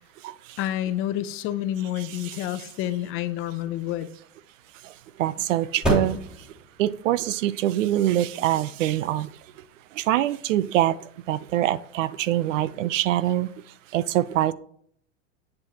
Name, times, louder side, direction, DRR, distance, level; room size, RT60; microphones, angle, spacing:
voice 1, 0.6-4.1, left 12 dB, 35° left, 0.6 m, -29 dB
sound 1, 4.4-10.5, equal, ahead, 3.1 m, -34 dB
voice 2, 5.2-6.2 6.8-9.3 10.0-11.0 11.3-13.5 13.9-14.5, right 13 dB, 85° right, 0.7 m, -24 dB
8.5 x 7.6 x 2.9 m
supercardioid pair, 140°, 37 cm